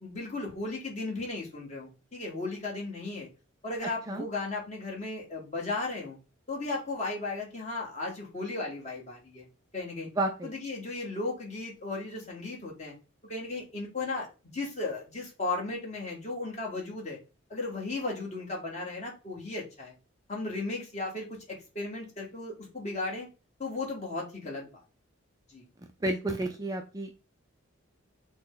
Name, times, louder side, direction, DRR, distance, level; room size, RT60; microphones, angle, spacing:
voice 1, 0.0-3.3 3.6-6.2 6.5-9.4 9.7-10.1 10.4-12.9 13.2-14.3 14.5-17.2 17.5-19.9 20.3-23.3 23.6-24.7 25.5-25.6, left 3 dB, 35° left, -2 dB, 1.5 m, -35 dB
voice 2, 10.2-10.5 26.0-27.2, right 1 dB, 15° right, 4 dB, 0.4 m, -31 dB
6.2 x 2.2 x 3.8 m, 0.31 s
head